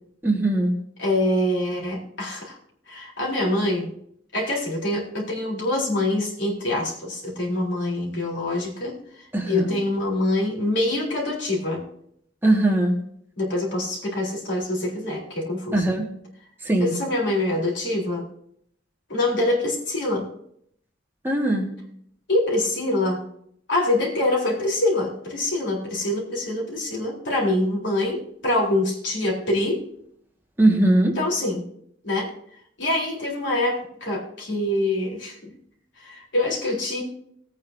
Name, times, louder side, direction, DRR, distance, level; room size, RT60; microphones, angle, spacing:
voice 1, 0.2-0.7 9.3-9.7 12.4-12.9 15.7-16.1 16.6-16.9 21.2-21.7 30.6-31.1, right 1 dB, 10° right, 0 dB, 1.7 m, -20 dB
voice 2, 1.0-2.5 2.9-3.9 4.3-9.0 9.5-11.8 13.4-15.9 16.8-18.3 19.1-20.3 22.3-23.2 23.7-29.8 31.2-31.6 32.0-32.3 32.8-35.5 36.0-37.0, left 1 dB, 75° left, -3 dB, 3.9 m, -25 dB
19.0 x 9.4 x 2.7 m, 0.69 s
head